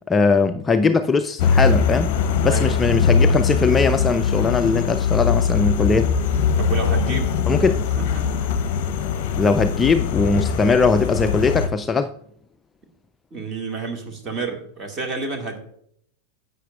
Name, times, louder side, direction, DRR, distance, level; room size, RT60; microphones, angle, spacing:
voice 1, 0.1-2.1 2.4-6.1 7.5-7.9 9.4-12.1, left 4 dB, 15° left, 9 dB, 0.4 m, -20 dB
sound 1, 1.4-11.7, left 6 dB, 45° left, 0.7 m, -21 dB
voice 2, 2.4-2.8 6.6-7.4 8.2-8.3 13.3-15.6, right 4 dB, 25° right, 3 dB, 2.0 m, -29 dB
11.5 x 8.2 x 2.4 m, 0.67 s
figure-of-eight pair, 90°, 0 cm